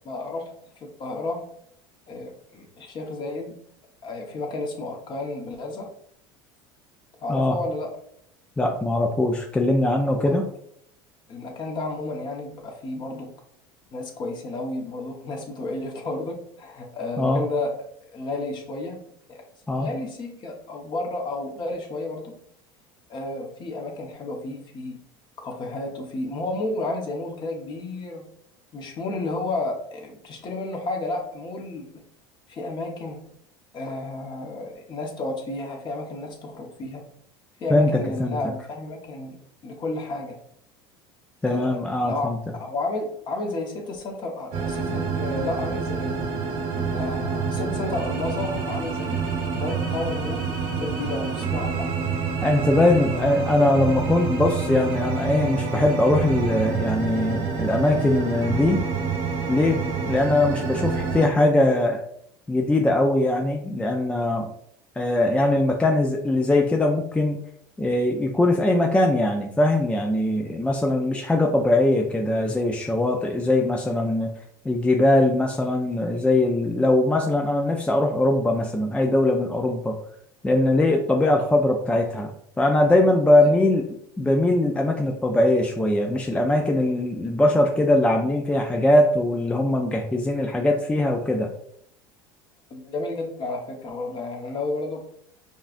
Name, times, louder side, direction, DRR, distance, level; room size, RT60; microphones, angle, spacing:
voice 1, 0.0-0.5 0.8-1.5 2.1-3.6 4.0-5.9 7.2-7.9 10.2-10.4 11.3-13.3 13.9-17.7 18.1-19.0 19.3-19.4 19.7-22.3 23.1-25.0 25.4-28.2 28.7-31.9 32.5-33.2 33.7-37.0 37.6-39.4 39.6-40.4 41.5-41.7 42.0-42.3 42.6-46.2 46.9-49.2 49.5-51.9 83.4-83.5 92.7-95.0, left 2 dB, 40° left, 2 dB, 1.1 m, -31 dB
voice 2, 8.6-10.4 17.2-17.4 19.7-19.9 37.7-38.4 41.4-42.4 52.4-58.8 59.5-62.0 62.5-64.5 65.0-67.4 67.8-74.3 74.6-80.0 80.4-82.3 82.6-83.8 84.2-91.5, left 1 dB, 10° left, 2 dB, 0.4 m, -21 dB
sound 1, 44.5-61.3, right 5 dB, 65° right, 1.2 m, -28 dB
5.3 x 2.5 x 2.5 m, 0.70 s
hypercardioid pair, 90°, 11 cm